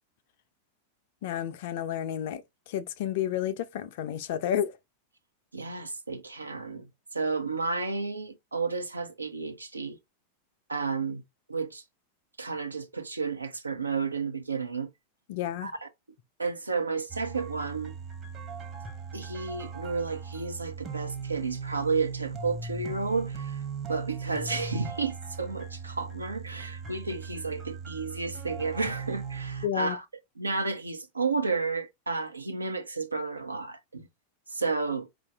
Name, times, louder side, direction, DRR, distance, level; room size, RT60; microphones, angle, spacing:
voice 1, 1.2-4.8 15.3-15.7 29.6-30.0, left 10 dB, 50° left, 0.5 m, -31 dB
voice 2, 5.5-6.9 7.1-10.0 10.7-11.2 11.5-11.8 12.4-14.9 15.6-15.7 16.4-17.9 19.1-23.6 23.9-30.0 30.4-34.1 34.5-35.1, right 4 dB, 80° right, 0.6 m, -32 dB
sound 1, 17.1-29.7, right 5 dB, 30° right, 1.0 m, -38 dB
4.7 x 2.5 x 3.4 m
figure-of-eight pair, 90°, 0 cm